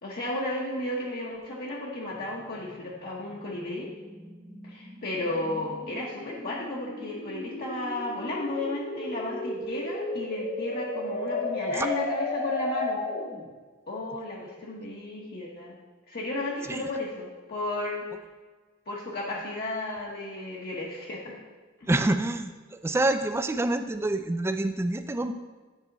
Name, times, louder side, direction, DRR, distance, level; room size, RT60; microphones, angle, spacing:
voice 1, 0.0-3.9 4.6-13.0 13.9-15.7 16.1-18.0 18.9-21.4 21.8-21.9, left 2 dB, 50° left, -4 dB, 0.9 m, -34 dB
sound 1, 2.1-13.4, left 2 dB, 90° left, 2.1 m, -34 dB
voice 2, 21.9-25.3, right 2 dB, 15° right, 9 dB, 0.3 m, -27 dB
8.2 x 4.2 x 4.0 m, 1.3 s
head